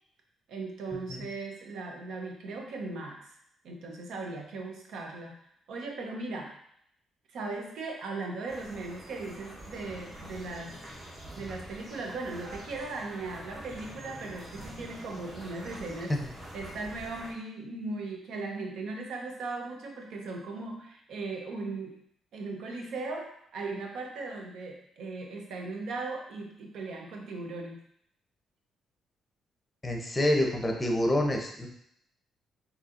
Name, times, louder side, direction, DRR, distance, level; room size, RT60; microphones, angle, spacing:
voice 1, 0.5-3.4 3.6-5.3 5.7-6.5 7.3-10.8 11.4-16.1 16.5-22.0 22.3-27.8, right 3 dB, 75° right, 1 dB, 0.7 m, -38 dB
sound 1, 8.5-17.3, right 1 dB, 35° right, 1.1 m, -45 dB
voice 2, 29.8-31.7, left 1 dB, 15° left, 2 dB, 0.7 m, -27 dB
4.1 x 2.7 x 2.5 m, 0.71 s
cardioid pair, 90°, 0 cm